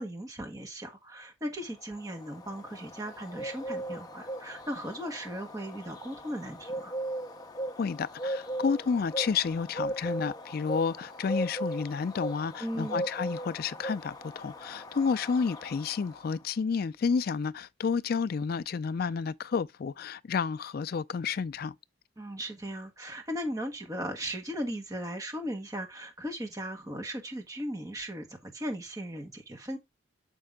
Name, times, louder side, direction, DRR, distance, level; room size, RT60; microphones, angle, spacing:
voice 1, 0.0-6.9 12.6-13.1 22.2-29.8, equal, 15° right, 1.4 m, -37 dB
Bird, 1.7-16.4, right 1 dB, 20° left, 0.8 m, -38 dB
voice 2, 7.8-21.7, left 5 dB, 50° left, 0.3 m, -30 dB
6.7 x 5.3 x 3.5 m
head